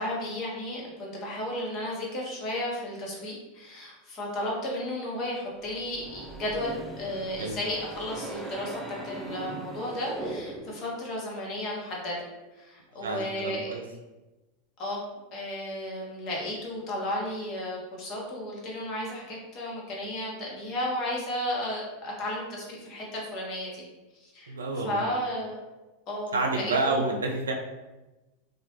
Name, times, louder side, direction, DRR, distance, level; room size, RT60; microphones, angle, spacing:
voice 1, 0.0-12.2 12.6-13.8 14.8-15.0 15.3-23.8 24.2-24.5 24.8-25.6 26.1-27.1, left 1 dB, 45° left, -3 dB, 0.9 m, -33 dB
sound 1, 5.6-10.9, right 2 dB, 10° right, 0.4 m, -40 dB
voice 2, 13.0-13.8 24.5-25.0 26.3-27.5, right 3 dB, 85° right, 2 dB, 0.4 m, -29 dB
2.3 x 2.0 x 2.9 m, 1.1 s
hypercardioid pair, 90°, 0 cm